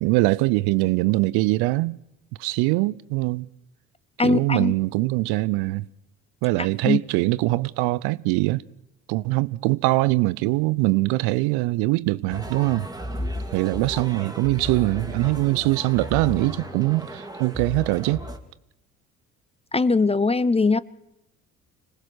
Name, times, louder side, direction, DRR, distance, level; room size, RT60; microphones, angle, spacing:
voice 1, 0.0-2.0 2.4-3.5 4.2-5.9 6.4-8.6 9.1-12.9 13.5-18.2, right 21 dB, 65° right, 0.7 m, -22 dB
voice 2, 4.2-4.7 6.8-7.0 19.7-20.8, left 3 dB, 15° left, 0.7 m, -20 dB
sound 1, 12.3-18.4, equal, 10° right, 2.8 m, -34 dB
25.5 x 18.5 x 6.3 m
hypercardioid pair, 55°, 41 cm